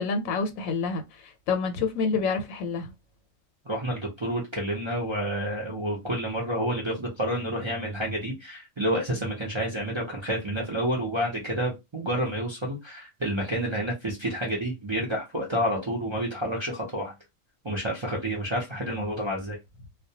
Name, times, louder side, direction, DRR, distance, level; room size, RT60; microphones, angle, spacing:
voice 1, 0.0-2.9, left 4 dB, 85° left, 1.0 m, -28 dB
voice 2, 3.7-17.1 17.6-19.6, right 1 dB, 40° right, 0.4 m, -29 dB
2.2 x 2.2 x 2.7 m
omnidirectional pair, 1.4 m